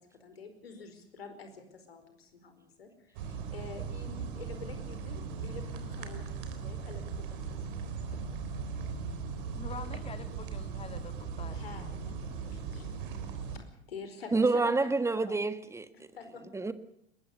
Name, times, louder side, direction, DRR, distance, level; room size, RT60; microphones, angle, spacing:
voice 1, 0.0-7.6 8.1-8.3 11.5-13.1 13.5-15.4 15.9-16.4, left 5 dB, 70° left, 4.9 m, -48 dB
sound 1, 3.1-13.6, right 5 dB, 55° right, 3.8 m, -38 dB
voice 2, 9.5-11.6, left 5 dB, 20° left, 2.2 m, -45 dB
voice 3, 14.3-15.8 16.5-16.7, right 3 dB, 10° right, 1.5 m, -27 dB
22.0 x 21.0 x 6.8 m
figure-of-eight pair, 85°, 31 cm